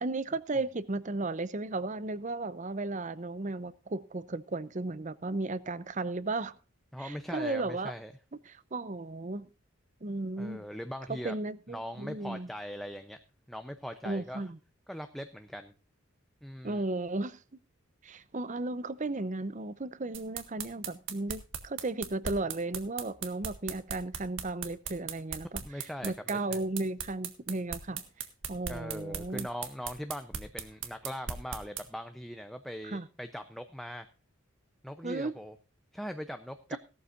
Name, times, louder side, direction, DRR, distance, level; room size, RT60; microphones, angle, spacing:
voice 1, 0.0-6.6 7.0-7.9 8.5-9.5 10.0-10.6 11.1-12.5 14.0-14.6 16.6-17.4 18.0-28.0 28.5-29.5 32.8-33.1 35.0-35.3 36.7-36.8, right 2 dB, 35° right, 0.7 m, -35 dB
voice 2, 6.9-8.1 10.4-11.3 11.7-13.2 13.5-14.4 14.9-15.7 16.4-16.8 25.6-26.6 28.7-34.1 34.8-35.5 35.9-36.8, equal, ahead, 0.6 m, -41 dB
sound 1, 20.1-31.8, right 7 dB, 60° right, 1.7 m, -38 dB
17.5 x 12.5 x 2.5 m
head